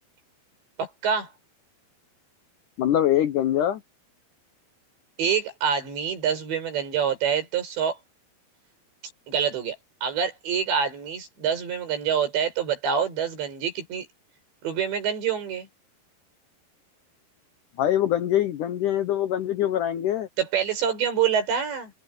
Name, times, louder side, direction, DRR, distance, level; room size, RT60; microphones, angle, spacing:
voice 1, 0.8-1.3 5.2-8.0 9.3-9.8 10.0-14.1 14.6-15.7 20.4-21.9, right 7 dB, 75° right, 7.8 m, -26 dB
voice 2, 2.8-3.8 17.8-20.3, left 11 dB, 90° left, 1.7 m, -23 dB
omnidirectional pair, 5.1 m